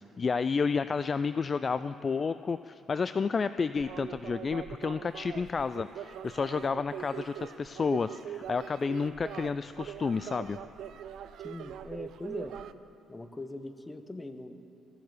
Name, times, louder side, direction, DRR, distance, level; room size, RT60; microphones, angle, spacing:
voice 1, 0.2-10.6, left 5 dB, 40° left, 13 dB, 0.3 m, -31 dB
sound 1, 3.8-12.7, right 9 dB, 65° right, 0.4 m, -42 dB
voice 2, 11.4-12.6 13.1-14.5, left 2 dB, 20° left, 9 dB, 1.1 m, -41 dB
15.0 x 7.3 x 9.5 m, 2.9 s
hypercardioid pair, 45°, 0 cm